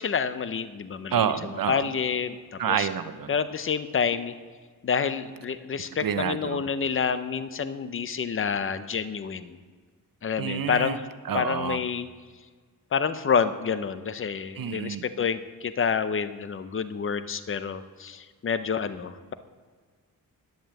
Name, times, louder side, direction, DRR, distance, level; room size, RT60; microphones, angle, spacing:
voice 1, 0.0-1.2 1.7-2.9 3.3-4.3 4.8-9.6 10.2-11.0 11.3-12.1 12.9-19.3, left 6 dB, 35° left, 12 dB, 0.6 m, -28 dB
voice 2, 1.1-1.9 2.6-3.3 6.0-6.7 10.4-11.0 11.2-11.8 14.6-15.0, right 8 dB, 75° right, 11 dB, 0.8 m, -28 dB
10.5 x 10.5 x 7.6 m, 1.5 s
wide cardioid pair, 165°, 35 cm